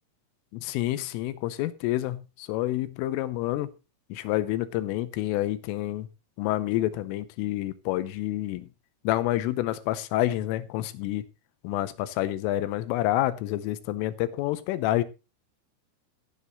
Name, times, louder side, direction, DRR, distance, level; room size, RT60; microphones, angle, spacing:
voice 1, 0.5-3.7 4.1-6.1 6.4-8.7 9.1-11.3 11.6-15.0, left 15 dB, 90° left, 3.5 m, -28 dB
14.5 x 10.0 x 3.1 m
omnidirectional pair, 5.7 m